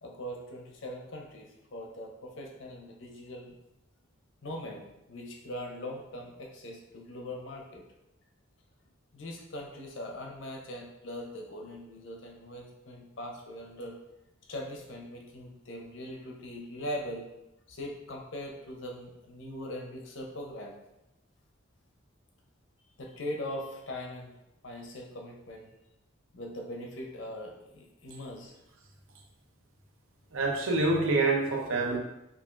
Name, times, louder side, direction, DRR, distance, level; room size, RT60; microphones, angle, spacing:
voice 1, 0.0-3.5 4.4-7.8 9.1-14.0 14.5-17.2 17.7-20.7 23.0-24.3 24.6-25.7 26.3-28.5, left 1 dB, 60° left, 0 dB, 0.7 m, -41 dB
voice 2, 30.3-32.0, right 3 dB, 75° right, 1 dB, 0.7 m, -26 dB
5.3 x 2.4 x 2.4 m, 0.89 s
head